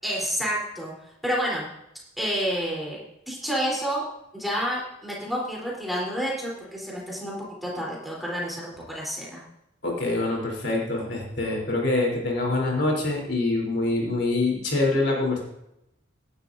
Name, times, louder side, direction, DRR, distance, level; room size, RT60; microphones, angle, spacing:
voice 1, 0.0-0.9 1.2-1.6 2.2-3.0 3.3-4.0 4.3-9.4, equal, ahead, -4 dB, 3.6 m, -29 dB
voice 2, 9.8-15.4, left 2 dB, 60° left, -1 dB, 3.6 m, -25 dB
17.0 x 11.0 x 2.7 m, 0.83 s
head